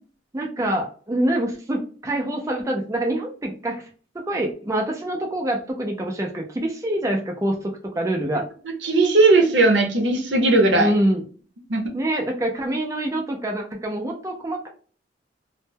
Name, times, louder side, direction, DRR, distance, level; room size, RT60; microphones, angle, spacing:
voice 1, 0.3-3.8 4.3-8.4 10.8-11.2 11.9-14.7, right 1 dB, 15° right, 1 dB, 0.3 m, -25 dB
voice 2, 8.8-10.9 11.7-11.8, right 2 dB, 75° right, 4 dB, 0.7 m, -17 dB
2.1 x 2.1 x 3.2 m, 0.40 s
head